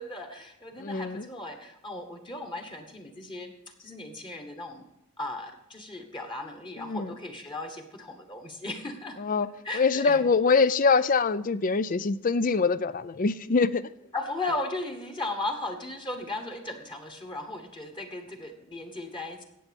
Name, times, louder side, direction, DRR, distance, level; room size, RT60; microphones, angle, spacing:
voice 1, 0.0-3.5 3.8-4.8 5.2-9.2 9.6-10.2 14.1-19.4, left 2 dB, 20° left, 5 dB, 1.3 m, -36 dB
voice 2, 0.8-1.3 6.8-7.1 9.2-9.5 9.7-13.9, left 4 dB, 40° left, 16 dB, 0.4 m, -24 dB
17.0 x 7.3 x 5.2 m, 0.82 s
head